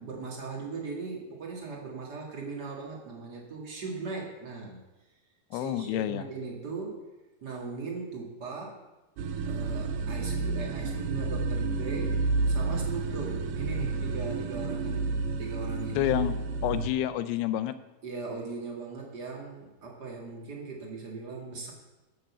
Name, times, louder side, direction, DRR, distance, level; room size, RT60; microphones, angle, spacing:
voice 1, 0.0-4.8 5.5-7.1 7.4-8.9 9.4-16.1 18.0-21.7, right 4 dB, 60° right, -1 dB, 1.0 m, -39 dB
voice 2, 5.5-6.2 15.9-17.8, left 13 dB, 85° left, 11 dB, 2.6 m, -29 dB
sound 1, 9.2-16.9, right 3 dB, 80° right, 2.7 m, -30 dB
11.5 x 6.4 x 7.1 m, 1.0 s
omnidirectional pair, 4.7 m